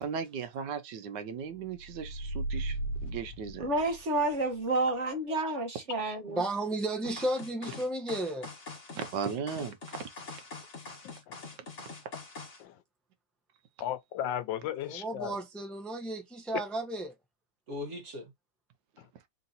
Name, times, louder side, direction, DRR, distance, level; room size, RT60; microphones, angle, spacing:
voice 1, 0.0-3.7 8.9-10.1, right 6 dB, 75° right, 1.3 m, -37 dB
sound 1, 1.7-4.4, right 2 dB, 70° left, 1.1 m, -36 dB
voice 2, 3.6-6.4 17.7-18.2, right 2 dB, 45° right, 1.2 m, -30 dB
voice 3, 6.3-8.5 14.9-17.1, right 1 dB, ahead, 0.5 m, -33 dB
sound 2, 7.0-12.6, left 3 dB, 40° left, 1.7 m, -44 dB
voice 4, 11.0-11.5 12.6-12.8 13.8-15.4 19.0-19.1, left 11 dB, 90° left, 1.4 m, -36 dB
3.8 x 2.8 x 3.9 m
omnidirectional pair, 2.0 m